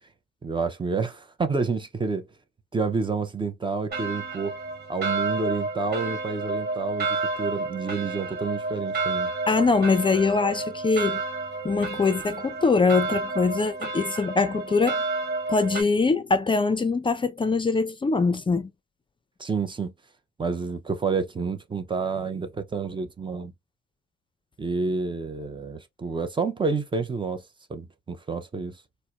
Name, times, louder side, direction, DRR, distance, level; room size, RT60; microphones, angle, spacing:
voice 1, 0.4-2.3 2.7-4.6 4.9-9.3 19.4-19.9 20.4-23.5 24.6-27.4 27.7-28.8, right 4 dB, 25° right, 0.6 m, -29 dB
sound 1, 3.9-15.8, right 3 dB, 50° right, 1.5 m, -30 dB
voice 2, 9.5-11.2 11.6-15.0 15.5-18.7, left 4 dB, 25° left, 0.4 m, -23 dB
4.1 x 2.1 x 2.3 m
cardioid pair, 90°, 20 cm